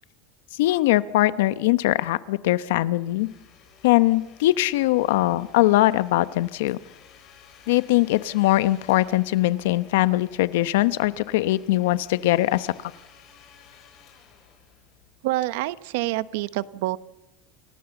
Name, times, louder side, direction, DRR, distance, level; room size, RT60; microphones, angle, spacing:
voice 1, 0.6-3.3 3.8-6.8 7.7-12.9, left 16 dB, 85° left, 14 dB, 0.9 m, -21 dB
Domestic sounds home sounds, 2.8-15.4, left 8 dB, 45° left, 7.2 m, -54 dB
voice 2, 15.2-17.0, right 18 dB, 75° right, 16 dB, 0.8 m, -27 dB
29.0 x 17.5 x 7.2 m, 0.97 s
supercardioid pair, 130°, 0 cm